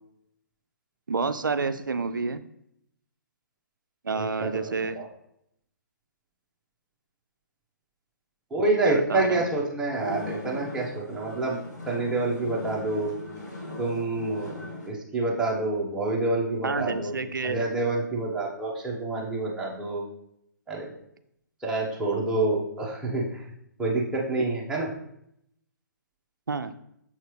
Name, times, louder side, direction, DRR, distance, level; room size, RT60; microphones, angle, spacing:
voice 1, 1.1-2.4 4.0-5.0 8.8-9.5 16.6-17.6 26.5-26.7, right 4 dB, 85° right, 11 dB, 0.4 m, -29 dB
voice 2, 4.1-5.1 8.5-11.6 11.9-13.1 13.8-17.1 17.4-20.0 20.7-21.0 21.6-23.4 23.8-24.9, right 2 dB, 5° right, -4 dB, 1.2 m, -27 dB
sound 1, 9.9-14.9, left 1 dB, 60° left, 1.9 m, -38 dB
6.7 x 4.5 x 3.2 m, 0.75 s
figure-of-eight pair, 130°, 10 cm